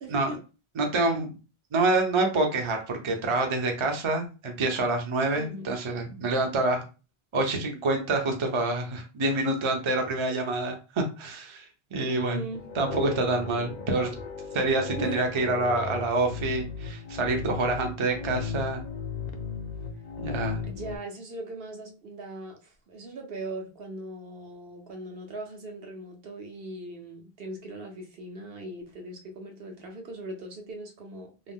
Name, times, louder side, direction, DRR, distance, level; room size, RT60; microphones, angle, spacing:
voice 1, 0.0-0.4 5.3-5.7 12.0-12.7 15.0-15.2 20.6-31.5, right 1 dB, 70° right, 2 dB, 1.0 m, -39 dB
voice 2, 0.8-1.3 1.7-6.8 7.3-12.5 12.8-14.1 14.5-18.8 20.2-20.6, right 2 dB, 35° right, 3 dB, 0.6 m, -27 dB
sound 1, 12.5-21.0, left 5 dB, 55° left, 0.5 m, -36 dB
2.6 x 2.1 x 3.5 m, 0.32 s
omnidirectional pair, 1.0 m